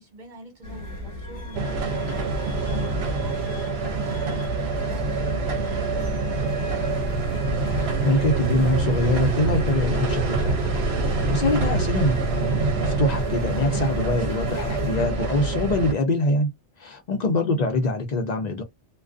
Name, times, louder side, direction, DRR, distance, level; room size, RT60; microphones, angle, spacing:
voice 1, 0.0-7.1 17.3-17.6, right 2 dB, 45° right, 1.2 m, -45 dB
sound 1, 0.6-15.0, left 1 dB, 30° left, 1.2 m, -36 dB
sound 2, 1.6-15.9, right 3 dB, 70° right, 0.9 m, -25 dB
voice 2, 7.7-10.6 11.3-16.5 16.8-18.6, left 2 dB, 55° left, 0.5 m, -24 dB
2.4 x 2.2 x 2.4 m
omnidirectional pair, 1.2 m